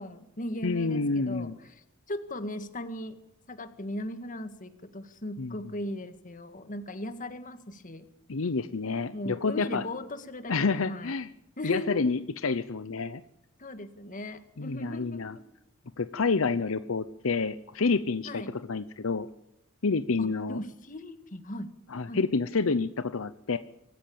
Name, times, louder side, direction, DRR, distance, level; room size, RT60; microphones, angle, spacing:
voice 1, 0.0-1.8 2.1-3.2 3.5-8.1 9.1-11.1 11.6-12.1 13.6-15.4 18.3-18.5 20.2-21.7 22.1-22.2, left 1 dB, 40° left, 9 dB, 1.9 m, -38 dB
voice 2, 0.6-1.6 5.4-5.5 8.3-9.8 10.5-11.3 11.6-13.2 14.6-15.4 16.0-19.3 19.8-20.6 21.9-23.6, left 4 dB, 70° left, 12 dB, 0.8 m, -28 dB
25.0 x 14.5 x 8.8 m, 0.80 s
head